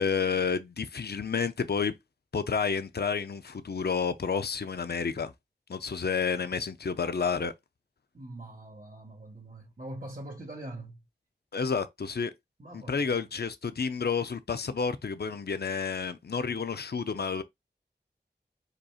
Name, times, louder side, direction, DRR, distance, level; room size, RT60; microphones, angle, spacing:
voice 1, 0.0-1.9 2.3-5.3 5.7-7.5 11.5-12.3 12.7-17.4, left 5 dB, 65° left, 0.5 m, -30 dB
voice 2, 8.1-11.1 12.6-13.3, right 1 dB, 50° right, 1.3 m, -43 dB
5.2 x 4.2 x 2.3 m
wide cardioid pair, 45°, 18 cm